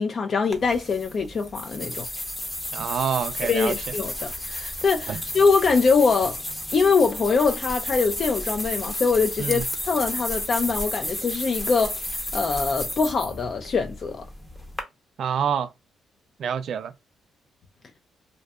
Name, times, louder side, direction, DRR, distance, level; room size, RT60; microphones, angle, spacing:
voice 1, 0.0-2.1 3.4-6.4 6.7-14.2, left 4 dB, 50° left, 0.3 m, -23 dB
sound 1, 0.5-14.8, left 1 dB, 15° left, 0.7 m, -32 dB
voice 2, 2.7-3.7 5.1-5.2 9.4-9.6 15.2-15.7 16.4-16.9, right 7 dB, 65° right, 0.3 m, -27 dB
2.6 x 2.2 x 2.2 m
cardioid pair, 90°, 0 cm